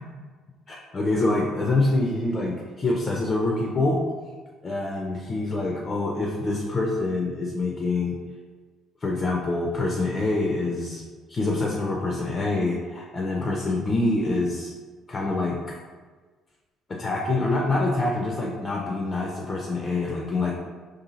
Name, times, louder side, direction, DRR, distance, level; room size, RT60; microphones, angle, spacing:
voice 1, 0.7-4.0 4.6-8.2 9.0-11.0 11.3-14.7 15.1-15.8 16.9-20.5, left 2 dB, 30° left, -1 dB, 0.4 m, -26 dB
2.7 x 2.3 x 2.8 m, 1.4 s
figure-of-eight pair, 50°, 0 cm